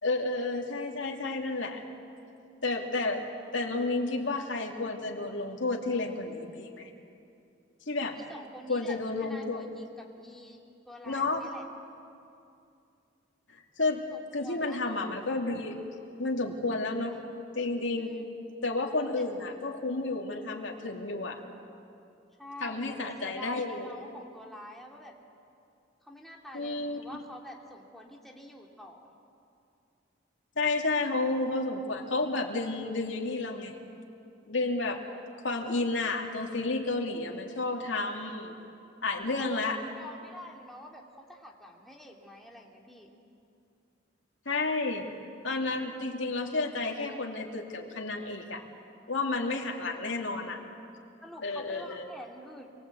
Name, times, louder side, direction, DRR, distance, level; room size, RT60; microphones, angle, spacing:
voice 1, 0.0-1.8 2.6-6.9 7.9-8.2 8.7-9.6 11.1-11.5 13.8-14.0 14.3-15.8 16.2-17.2 17.5-18.2 18.6-21.4 22.6-23.9 26.5-27.0 30.6-33.7 34.5-35.0 35.4-38.5 39.0-39.8 44.5-45.1 45.4-48.6 49.1-50.6 51.4-52.0, left 3 dB, 75° left, 0 dB, 2.6 m, -31 dB
voice 2, 8.2-11.6 14.1-14.8 17.9-18.2 22.4-25.1 26.0-29.1 39.2-43.1 49.9-50.0 51.2-52.7, left 1 dB, ahead, -1 dB, 2.8 m, -47 dB
28.0 x 23.0 x 8.4 m, 2.6 s
head